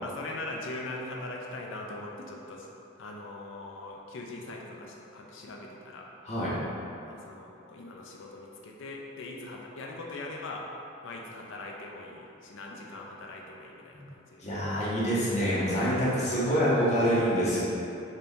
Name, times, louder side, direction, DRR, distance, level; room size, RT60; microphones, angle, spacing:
voice 1, 0.0-2.7 3.0-6.1 7.1-10.7 11.0-14.5, left 2 dB, 70° left, -1 dB, 0.4 m, -41 dB
voice 2, 14.4-17.6, equal, 35° left, -9 dB, 0.7 m, -26 dB
2.8 x 2.6 x 3.4 m, 2.7 s
head